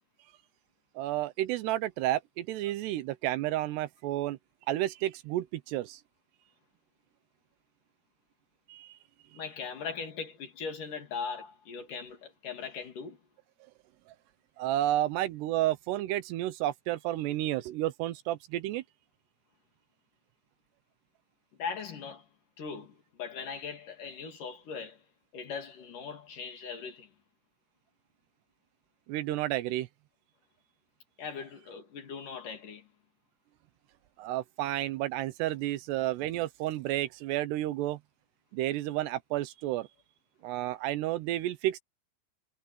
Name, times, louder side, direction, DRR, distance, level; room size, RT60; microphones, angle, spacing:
voice 1, 1.0-4.4 4.7-6.0 8.7-8.9 14.6-18.8 29.1-29.9 34.2-38.0 38.5-39.9 40.4-41.8, right 14 dB, 80° right, 2.8 m, -31 dB
voice 2, 9.3-13.2 21.6-22.3 22.6-25.0 25.3-27.1 31.2-32.9, left 5 dB, 50° left, 4.0 m, -40 dB
omnidirectional pair, 5.0 m